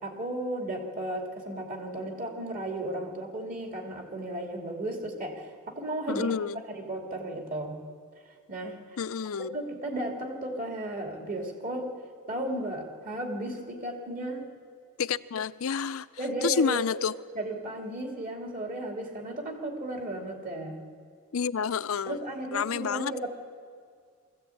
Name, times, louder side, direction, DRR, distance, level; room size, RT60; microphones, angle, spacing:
voice 1, 0.0-6.3 6.7-7.8 8.5-9.0 9.5-11.9 12.3-14.5 16.2-16.8 17.3-20.8 22.1-23.3, right 1 dB, 40° right, 1 dB, 2.9 m, -34 dB
voice 2, 6.1-6.6 9.0-9.6 15.0-16.1 16.4-17.1 21.3-22.2 22.5-23.3, left 6 dB, 70° left, 16 dB, 0.5 m, -29 dB
23.0 x 15.0 x 8.6 m, 2.1 s
head